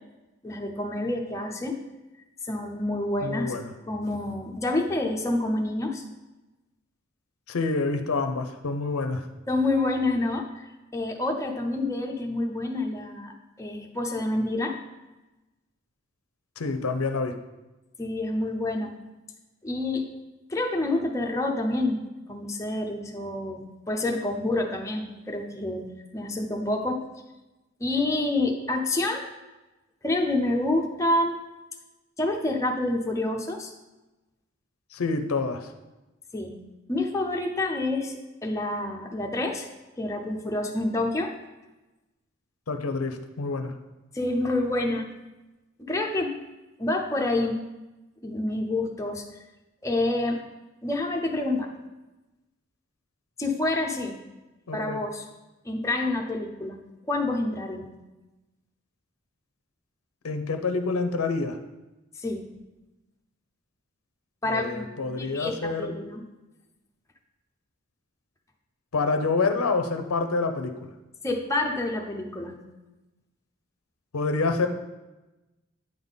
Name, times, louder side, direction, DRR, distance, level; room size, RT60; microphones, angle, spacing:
voice 1, 0.4-1.8 2.5-3.5 3.9-6.0 9.5-10.7 10.9-14.8 18.0-18.9 19.6-20.1 20.5-22.0 22.3-27.0 27.8-29.3 30.0-31.4 32.2-33.7 36.3-36.6 36.9-38.1 38.4-39.7 40.0-41.3 44.1-45.1 45.8-46.4 46.8-47.6 48.2-49.2 49.8-50.4 50.8-51.7 53.4-54.2 54.7-55.2 55.6-56.8 57.1-58.0 62.2-62.5 64.4-66.2 71.2-72.6, left 2 dB, 15° left, 1 dB, 0.6 m, -28 dB
voice 2, 3.2-3.7 7.5-9.2 16.6-17.3 34.9-35.7 42.7-43.7 54.7-55.0 60.2-61.6 64.4-66.2 68.9-70.9 74.1-74.7, left 3 dB, 90° left, 7 dB, 0.6 m, -27 dB
8.9 x 3.6 x 4.0 m, 1.0 s
head